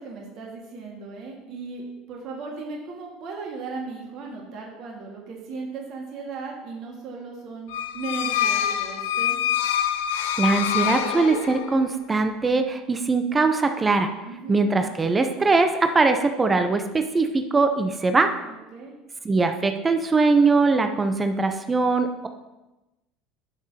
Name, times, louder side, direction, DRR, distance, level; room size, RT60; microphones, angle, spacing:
voice 1, 0.0-7.7 7.9-9.4 14.2-14.6 18.4-18.9, right 4 dB, 55° right, -1 dB, 1.8 m, -36 dB
sound 1, 7.7-11.8, left 10 dB, 80° left, 0.6 m, -25 dB
voice 2, 10.1-14.1 14.5-18.3 19.2-22.3, right 3 dB, 20° right, 7 dB, 0.7 m, -21 dB
12.0 x 5.9 x 2.9 m, 1.0 s
hypercardioid pair, 80°, 0 cm